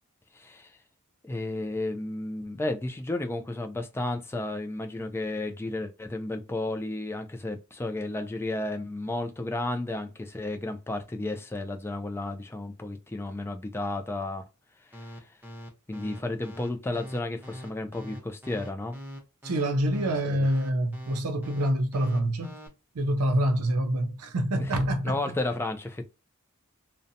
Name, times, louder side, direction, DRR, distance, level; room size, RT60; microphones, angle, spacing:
voice 1, 0.4-0.7 1.2-14.4 14.9-15.1 15.9-19.0 25.0-26.1, left 2 dB, 10° left, 0.3 m, -32 dB
sound 1, 14.9-22.7, equal, 10° right, 0.7 m, -41 dB
voice 2, 19.4-22.6 22.9-25.4, right 1 dB, 85° right, 0.5 m, -26 dB
2.6 x 2.1 x 2.6 m
head